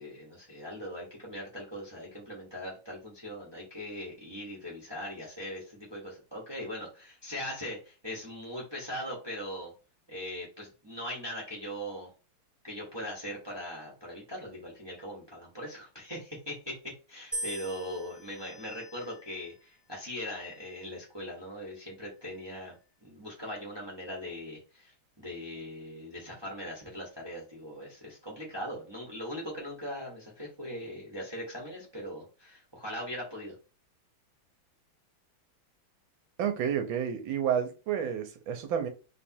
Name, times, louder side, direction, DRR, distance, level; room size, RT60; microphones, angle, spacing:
voice 1, 0.0-9.7 10.1-12.1 12.6-16.7 17.1-22.7 23.0-24.9 25.2-33.5, equal, 15° right, 1.0 m, -40 dB
sound 1, 17.3-19.5 20.3-20.9, right 1 dB, ahead, 0.5 m, -42 dB
voice 2, 36.4-38.9, right 8 dB, 75° right, 1.6 m, -30 dB
3.5 x 3.3 x 4.3 m
omnidirectional pair, 2.2 m